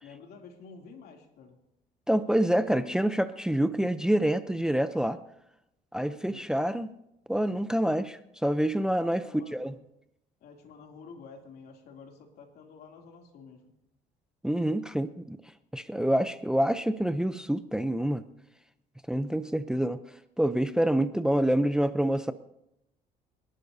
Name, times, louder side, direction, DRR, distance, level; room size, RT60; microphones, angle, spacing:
voice 1, 0.0-1.6 6.1-6.5 9.2-9.8 10.4-13.7, left 5 dB, 70° left, 2 dB, 2.9 m, -50 dB
voice 2, 2.1-5.2 5.9-6.9 7.3-9.2 9.5-9.7 14.4-15.4 15.7-18.2 19.1-20.0 20.4-22.3, right 1 dB, 5° right, 11 dB, 0.6 m, -27 dB
29.5 x 11.5 x 2.7 m, 0.83 s
cardioid pair, 110°, 17 cm